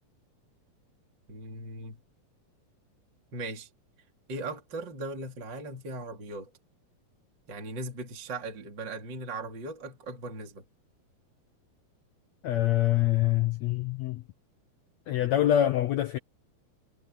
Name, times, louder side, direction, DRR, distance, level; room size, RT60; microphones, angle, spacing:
voice 1, 1.3-2.0 3.3-3.7 4.3-6.5 7.5-10.6, right 2 dB, 30° right, 3.6 m, -38 dB
voice 2, 12.4-14.2 15.1-16.2, left 12 dB, 80° left, 1.6 m, -25 dB
omnidirectional pair, 4.1 m